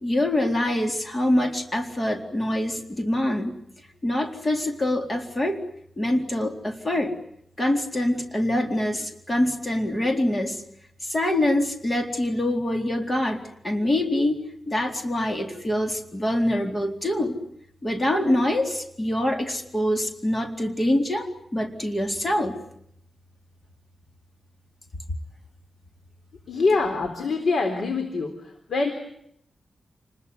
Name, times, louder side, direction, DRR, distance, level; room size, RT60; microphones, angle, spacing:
voice 1, 0.0-3.6 4.0-5.6 6.0-7.1 7.6-10.6 11.0-14.4 14.7-17.3 17.8-22.6, left 1 dB, 25° left, 4 dB, 4.0 m, -25 dB
voice 2, 26.5-28.3 28.7-28.9, left 3 dB, 70° left, 6 dB, 3.7 m, -24 dB
29.5 x 21.0 x 9.6 m, 0.73 s
wide cardioid pair, 130°, 0 cm